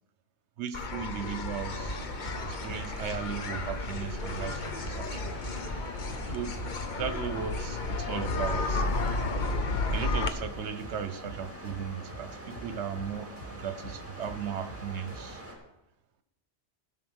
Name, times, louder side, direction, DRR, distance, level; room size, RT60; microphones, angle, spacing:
voice 1, 0.6-2.0 2.4-5.3 6.3-6.6 7.0-9.0 9.6-15.4, right 7 dB, 80° right, 11 dB, 1.1 m, -36 dB
sound 1, 0.7-10.3, left 3 dB, 45° left, 0.9 m, -33 dB
sound 2, 1.6-15.5, right 1 dB, 10° right, 2.4 m, -45 dB
sound 3, 1.8-2.4 2.6-2.8 3.1-4.1 4.4-4.5 4.8-5.8 6.1-6.2 6.5-7.5 7.8-7.9 8.2-9.7 9.9-12.7 12.9-13.1 13.4-15.4, right 2 dB, 35° right, 5.6 m, -45 dB
16.5 x 5.5 x 6.3 m, 0.95 s
omnidirectional pair, 1.1 m